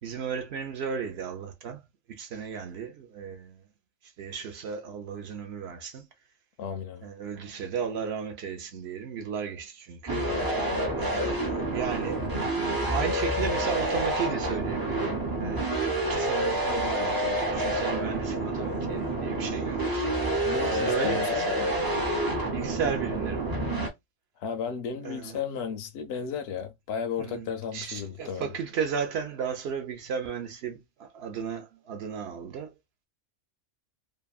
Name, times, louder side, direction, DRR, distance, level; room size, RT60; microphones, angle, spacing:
voice 1, 0.0-1.8 2.1-3.6 4.2-6.1 7.0-10.3 11.0-12.3 12.9-15.8 16.1-20.2 20.7-21.7 22.1-22.2 22.5-23.9 25.0-25.4 27.2-32.7, right 7 dB, 65° right, 0.9 m, -34 dB
voice 2, 6.6-7.1 20.4-21.5 24.4-28.5, left 6 dB, 65° left, 0.8 m, -34 dB
sound 1, 10.1-23.9, right 1 dB, 30° right, 0.4 m, -28 dB
2.8 x 2.5 x 2.3 m
omnidirectional pair, 1.2 m